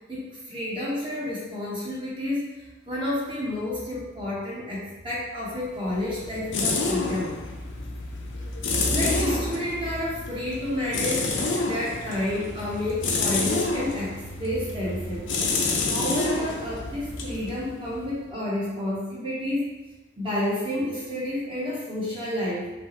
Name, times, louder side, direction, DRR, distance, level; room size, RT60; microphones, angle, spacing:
voice 1, 0.1-2.4 2.9-7.3 8.9-14.1 14.4-15.3 15.9-19.7 20.2-22.7, left 1 dB, 25° right, -7 dB, 1.1 m, -30 dB
sound 1, 5.6-18.2, left 3 dB, 80° left, 0.7 m, -29 dB
5.5 x 3.0 x 3.0 m, 1.1 s
head